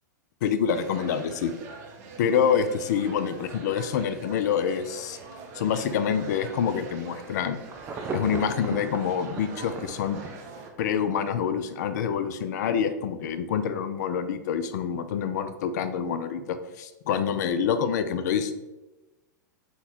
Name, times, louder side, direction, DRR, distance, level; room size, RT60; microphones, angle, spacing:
voice 1, 0.4-1.5 2.2-5.2 5.5-7.6 8.1-10.2 10.8-18.5, left 7 dB, 65° left, 10 dB, 0.4 m, -26 dB
sound 1, 0.7-10.7, right 4 dB, 50° right, 0.7 m, -44 dB
Insect / Thunder / Rain, 7.3-11.6 12.1-12.2, right 5 dB, 20° right, 0.3 m, -38 dB
4.1 x 2.3 x 4.1 m, 1.1 s
hypercardioid pair, 105°, 10 cm